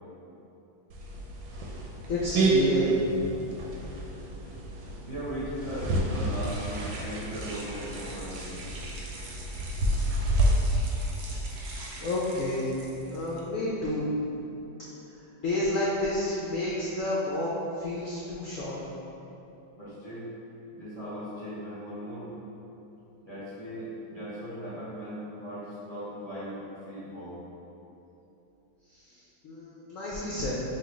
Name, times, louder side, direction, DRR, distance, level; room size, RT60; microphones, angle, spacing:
sound 1, 0.9-10.5, right 1 dB, 90° right, 1.3 m, -29 dB
voice 1, 2.1-3.0 12.0-12.7 13.1-14.1 15.4-17.5 17.8-18.8 29.4-30.5, left 1 dB, 80° left, -7 dB, 0.7 m, -30 dB
sound 2, 4.8-13.4, right 1 dB, 70° right, 0.9 m, -45 dB
voice 2, 5.0-8.6 19.8-20.3 20.7-22.3 23.2-26.6 26.8-27.4, equal, 30° right, -12 dB, 0.8 m, -38 dB
5.6 x 2.3 x 3.1 m, 2.9 s
omnidirectional pair, 2.1 m